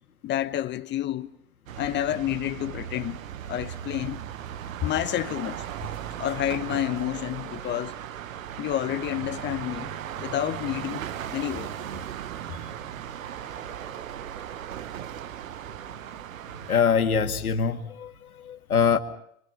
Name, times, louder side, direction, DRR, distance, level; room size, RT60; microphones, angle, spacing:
voice 1, 0.2-1.3 1.8-3.2 3.5-4.2 4.8-5.6 6.2-7.9 8.6-9.9 10.2-11.7, left 13 dB, 25° left, 1.0 m, -29 dB
sound 1, 1.7-16.8, right 10 dB, 65° right, 1.3 m, -37 dB
voice 2, 16.7-19.0, left 6 dB, 80° left, 2.3 m, -24 dB
29.0 x 26.0 x 5.9 m
figure-of-eight pair, 100°, 43 cm